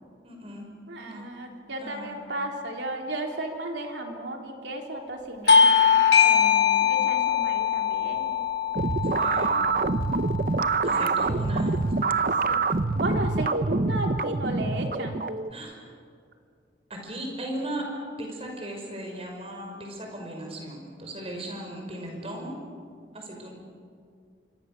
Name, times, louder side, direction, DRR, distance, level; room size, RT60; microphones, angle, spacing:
voice 1, 0.2-0.7 1.0-1.3 1.8-2.2 6.2-6.9 9.0-9.7 10.8-12.0 15.5-15.7 16.9-17.9 18.2-22.7 23.1-23.5, right 1 dB, 35° right, 1 dB, 5.6 m, -37 dB
voice 2, 0.9-6.1 6.8-8.4 10.9-11.4 12.5-12.6 12.9-15.2, right 1 dB, 80° right, 2 dB, 3.5 m, -34 dB
Bell / Doorbell, 5.5-10.6, left 7 dB, 70° left, 2.4 m, -22 dB
sound 1, 8.7-15.5, right 3 dB, 50° right, 0.7 m, -25 dB
27.0 x 24.5 x 6.8 m, 2.2 s
head